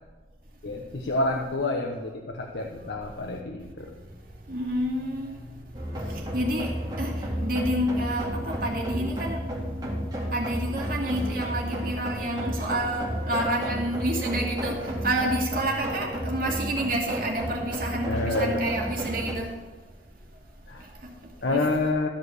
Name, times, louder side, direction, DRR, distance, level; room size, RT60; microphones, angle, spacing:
voice 1, 0.6-3.9 18.1-18.6 20.7-20.8 21.4-22.1, left 2 dB, 75° left, 1 dB, 1.0 m, -28 dB
voice 2, 4.5-5.7 6.0-9.5 10.3-19.5 20.8-21.6, right 1 dB, 50° right, -1 dB, 2.3 m, -29 dB
sound 1, 5.7-19.3, equal, 25° right, 2.2 m, -32 dB
13.0 x 4.8 x 8.2 m, 1.3 s
head